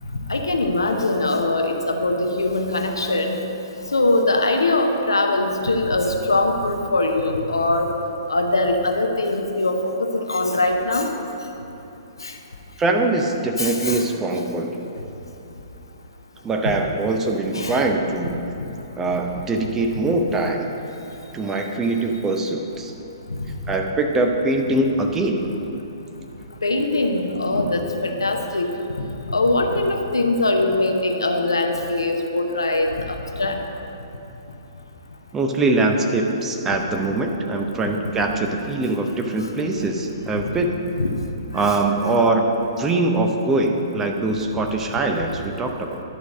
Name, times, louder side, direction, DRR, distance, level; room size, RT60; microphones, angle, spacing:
voice 1, 0.3-3.4 3.9-7.9 8.3-11.1 12.2-12.3 13.6-14.0 14.3-14.4 17.5-17.8 23.3-23.4 26.6-28.7 29.3-33.6 41.0-41.1 41.6-41.8, left 2 dB, 70° left, 3 dB, 0.9 m, -22 dB
voice 2, 12.8-14.8 16.4-18.4 19.0-20.7 21.3-22.9 23.7-25.5 35.3-40.7 41.5-42.5 42.8-46.0, right 2 dB, 15° right, 3 dB, 0.6 m, -22 dB
11.0 x 4.7 x 6.3 m, 2.9 s
figure-of-eight pair, 120°, 2 cm